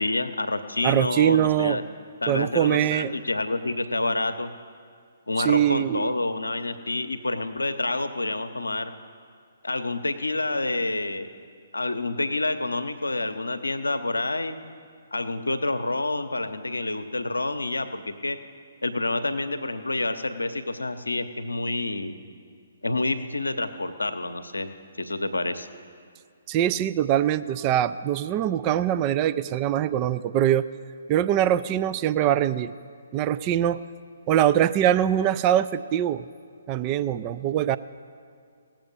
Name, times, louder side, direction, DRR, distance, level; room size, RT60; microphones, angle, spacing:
voice 1, 0.0-1.8 2.2-4.5 5.3-8.9 9.6-11.3 11.7-14.6 15.1-18.4 18.8-22.2 22.8-25.7, left 2 dB, 80° left, 9 dB, 0.7 m, -28 dB
voice 2, 0.8-1.8 2.3-3.1 5.4-6.1 26.5-30.6 31.1-32.7 33.1-33.8 34.3-36.3 36.7-37.8, right 11 dB, 25° right, 13 dB, 0.4 m, -23 dB
18.0 x 7.6 x 5.4 m, 2.2 s
figure-of-eight pair, 130°, 0 cm